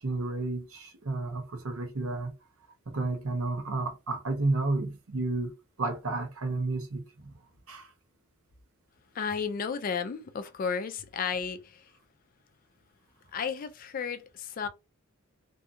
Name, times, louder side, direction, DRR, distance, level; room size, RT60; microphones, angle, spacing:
voice 1, 0.0-2.3 2.9-7.3 7.7-7.9, right 2 dB, 75° right, 0.8 m, -31 dB
voice 2, 9.1-11.9 13.3-14.7, left 6 dB, 40° left, 0.3 m, -33 dB
2.6 x 2.3 x 2.5 m
head